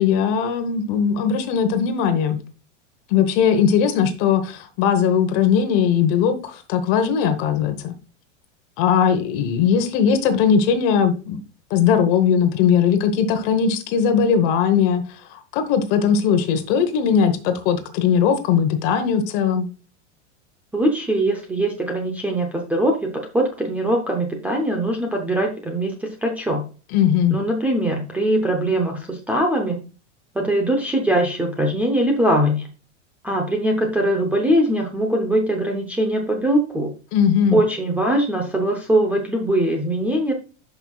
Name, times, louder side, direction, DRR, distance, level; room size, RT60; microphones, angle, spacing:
voice 1, 0.0-2.4 3.1-7.9 8.8-11.4 11.7-19.7 26.9-27.4 37.1-37.6, left 7 dB, 40° left, 1.0 m, -19 dB
voice 2, 20.7-26.6 27.3-29.8 30.3-32.6 33.2-36.9 37.5-40.3, right 1 dB, 5° right, 0.6 m, -21 dB
11.0 x 5.5 x 2.3 m
supercardioid pair, 160°, 35 cm